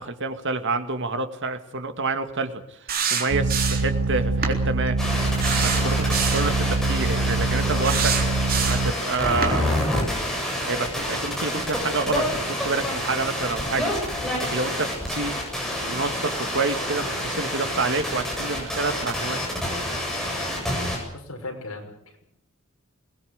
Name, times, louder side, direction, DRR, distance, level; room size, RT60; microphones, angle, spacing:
voice 1, 0.0-8.1 8.6-9.7 10.6-15.4 15.9-19.4, right 3 dB, 60° right, 8 dB, 2.1 m, -28 dB
sound 1, 2.9-4.0 4.4-4.6 5.4-6.5 7.8-8.9 9.4-9.6, right 6 dB, 45° right, 3.7 m, -26 dB
sound 2, 3.3-8.9, right 3 dB, 80° right, 0.8 m, -24 dB
sound 3, 5.0-21.0, equal, ahead, 7.5 m, -28 dB
voice 2, 21.1-22.2, left 2 dB, 75° left, 1 dB, 5.9 m, -37 dB
22.0 x 19.5 x 8.0 m, 0.74 s
head